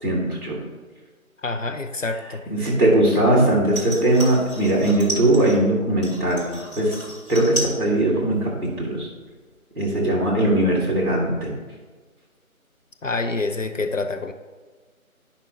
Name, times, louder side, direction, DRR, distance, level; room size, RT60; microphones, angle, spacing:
voice 1, 0.0-0.6 2.5-6.9 7.3-9.1 9.8-11.5, right 1 dB, 15° right, -4 dB, 1.8 m, -20 dB
voice 2, 1.4-2.4 13.0-14.3, left 3 dB, 60° left, 7 dB, 0.5 m, -27 dB
sound 1, 3.7-5.6 6.0-7.8 8.1-8.7 9.0-9.1, right 1 dB, 30° left, 2.0 m, -33 dB
10.0 x 5.7 x 3.2 m, 1.4 s
figure-of-eight pair, 165°, 43 cm